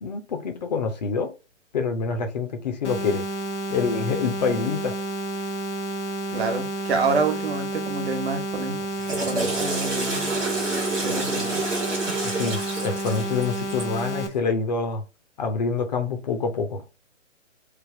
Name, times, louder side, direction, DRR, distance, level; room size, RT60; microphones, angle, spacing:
voice 1, 0.0-1.3 1.7-3.3 3.7-4.9 12.2-15.0 15.4-16.8, left 5 dB, 35° left, 0.6 m, -26 dB
sound 1, 2.8-14.3, right 2 dB, 70° left, 0.8 m, -30 dB
voice 2, 6.3-8.8 9.3-10.4 11.0-11.6, right 4 dB, 55° right, 1.1 m, -27 dB
Water / Toilet flush, 8.8-14.0, right 2 dB, 10° right, 0.6 m, -29 dB
3.3 x 2.3 x 3.3 m
hypercardioid pair, 140°, 37 cm